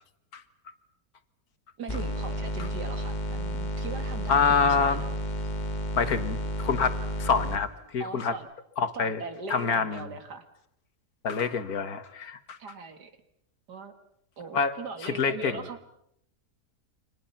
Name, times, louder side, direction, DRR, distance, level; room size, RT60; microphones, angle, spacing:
voice 1, 1.8-5.1 8.0-8.5 8.9-10.5 12.6-13.1 13.7-13.9 14.4-15.8, right 4 dB, 80° right, 8 dB, 2.7 m, -40 dB
sound 1, 1.9-7.6, equal, 30° left, 1.3 m, -32 dB
voice 2, 4.3-5.0 6.0-8.3 8.8-9.2 9.5-10.1 11.2-12.6 14.5-14.7 15.0-15.6, left 5 dB, 65° left, 10 dB, 1.9 m, -26 dB
30.0 x 25.0 x 5.8 m, 0.73 s
omnidirectional pair, 1.7 m